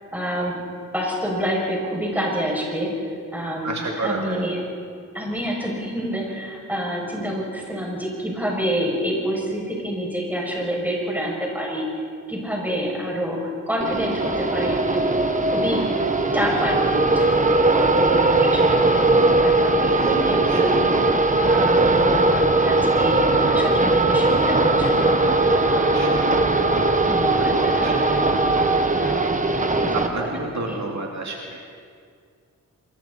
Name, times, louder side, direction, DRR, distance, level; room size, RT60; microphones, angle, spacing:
voice 1, 0.1-0.6 0.9-2.9 3.3-4.6 5.1-11.8 12.3-15.0 15.4-20.7 21.4-26.2 27.0-28.5 28.9-29.4 29.7-30.3 30.7-30.8, equal, 5° right, -3 dB, 7.1 m, -28 dB
voice 2, 3.6-4.4 19.9-20.1 20.5-20.6 25.7-26.2 27.6-27.9 29.9-31.6, right 3 dB, 60° right, -1 dB, 2.6 m, -30 dB
sound 1, 13.8-30.1, right 2 dB, 25° right, 1.2 m, -19 dB
27.5 x 22.5 x 4.4 m, 2.2 s
wide cardioid pair, 100°, 32 cm